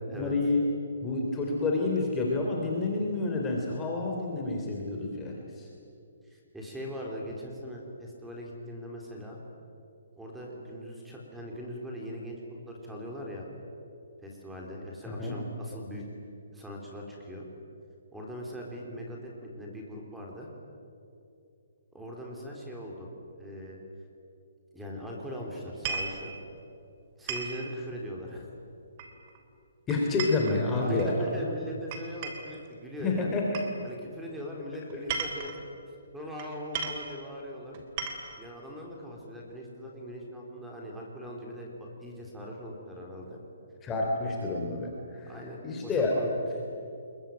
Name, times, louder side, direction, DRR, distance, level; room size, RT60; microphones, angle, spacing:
voice 1, 0.1-0.6 1.0-5.7 15.1-15.3 29.9-31.2 33.0-33.4 34.9-35.0 43.8-45.3 45.6-46.1, left 3 dB, 15° left, -1 dB, 3.3 m, -29 dB
voice 2, 6.2-9.4 10.2-13.5 14.2-16.0 16.5-17.4 18.1-20.5 21.9-23.1 23.4-23.8 24.7-26.3 27.2-28.5 30.1-33.4 33.8-35.5 36.1-37.7 38.4-43.4 45.3-46.3, equal, 5° right, -1 dB, 4.0 m, -40 dB
sound 1, 25.7-26.2 27.3-27.6 29.0-29.4 29.9-31.1 31.9-32.6 33.5-33.7 34.9-35.6 36.4-36.5 36.7-37.1 37.7-38.4, right 5 dB, 30° right, 3.2 m, -35 dB
26.0 x 22.5 x 9.4 m, 2.6 s
hypercardioid pair, 160°, 0 cm